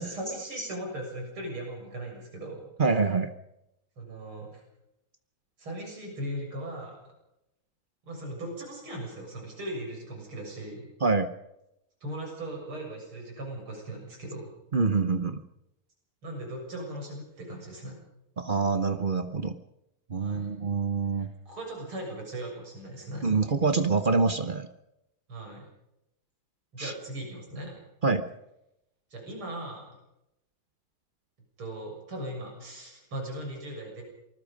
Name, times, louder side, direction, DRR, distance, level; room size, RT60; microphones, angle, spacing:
voice 1, 0.0-3.0 4.0-4.6 5.6-7.1 8.0-10.9 12.0-14.5 16.2-18.0 20.1-20.5 21.2-23.3 25.3-25.7 26.7-27.8 29.1-29.9 31.6-34.0, right 1 dB, 80° right, 1 dB, 7.9 m, -38 dB
voice 2, 2.8-3.3 11.0-11.3 14.7-15.4 18.4-19.6 20.1-21.3 23.2-24.7 26.8-26.9 28.0-28.3, right 4 dB, 45° right, 9 dB, 0.7 m, -26 dB
26.5 x 20.0 x 5.3 m, 0.85 s
omnidirectional pair, 2.3 m